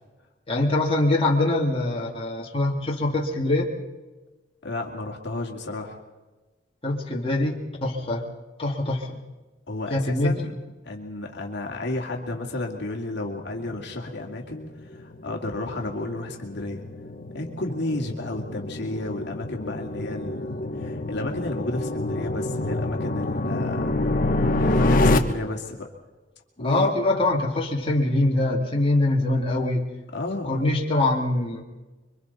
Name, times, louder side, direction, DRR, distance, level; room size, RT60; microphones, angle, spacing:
voice 1, 0.5-3.7 6.8-8.2 8.6-9.2 9.9-10.4 26.6-29.8 30.5-31.6, left 2 dB, 30° left, -2 dB, 2.5 m, -23 dB
voice 2, 4.6-6.0 9.7-10.5 10.8-16.8 17.3-23.9 24.2-25.9 26.6-26.9 30.1-30.6, left 2 dB, 65° left, 1 dB, 2.3 m, -32 dB
sound 1, 14.1-25.2, left 2 dB, 45° left, 1.2 m, -27 dB
26.0 x 24.0 x 4.2 m, 1.2 s
head